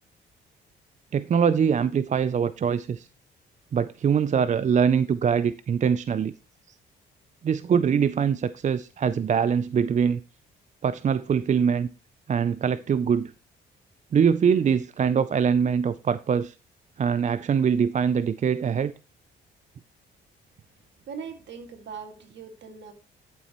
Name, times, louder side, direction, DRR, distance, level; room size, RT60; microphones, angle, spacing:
voice 1, 1.1-3.1 3.7-6.3 7.4-10.2 10.8-11.9 12.3-13.3 14.1-16.5 17.0-18.9, right 7 dB, 35° right, 0.4 m, -23 dB
voice 2, 21.1-22.9, right 6 dB, 65° right, 2.2 m, -40 dB
11.5 x 7.4 x 3.0 m
cardioid pair, 90°, 20 cm